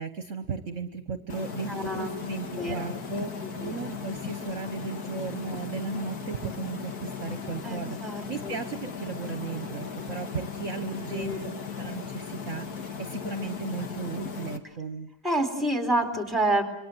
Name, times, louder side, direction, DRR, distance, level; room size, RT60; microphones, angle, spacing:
voice 1, 0.0-11.3 11.8-15.1, right 5 dB, 55° right, 7 dB, 1.5 m, -36 dB
sound 1, 1.3-14.6, left 6 dB, 70° left, 2.2 m, -37 dB
voice 2, 1.7-2.1 2.5-2.9 3.4-3.7 7.6-8.6 11.1-11.5 15.2-16.6, right 1 dB, ahead, 6 dB, 4.0 m, -28 dB
27.5 x 24.0 x 7.9 m, 0.79 s
omnidirectional pair, 1.7 m